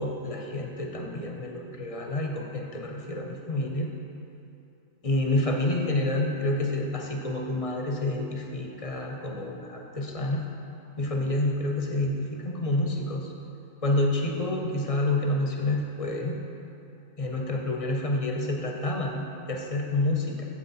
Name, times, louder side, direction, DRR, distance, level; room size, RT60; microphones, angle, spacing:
voice 1, 0.0-3.9 5.0-10.5 11.0-13.3 13.8-16.4 17.2-20.5, left 2 dB, 35° left, 1 dB, 0.7 m, -28 dB
7.7 x 6.9 x 4.3 m, 2.7 s
omnidirectional pair, 1.2 m